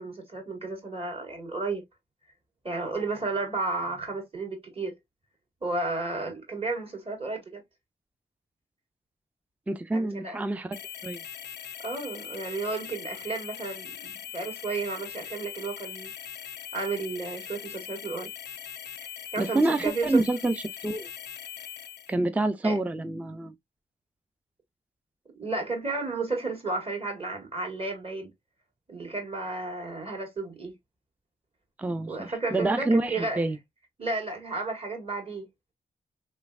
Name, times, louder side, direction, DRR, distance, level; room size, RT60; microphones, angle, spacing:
voice 1, 0.0-1.8 2.6-5.0 5.6-7.6 9.9-10.4 11.8-16.1 16.7-18.3 19.3-20.2 22.6-22.8 25.4-28.3 28.9-30.7 32.1-33.5 34.0-35.5, right 3 dB, 30° right, 1.8 m, -32 dB
voice 2, 9.7-10.8 11.0-11.2 19.4-20.5 20.8-21.1 22.1-23.5 31.8-33.6, right 2 dB, 10° right, 0.4 m, -27 dB
sound 1, 10.7-22.1, left 9 dB, 70° left, 0.4 m, -41 dB
3.3 x 3.1 x 2.3 m
cardioid pair, 75°, 18 cm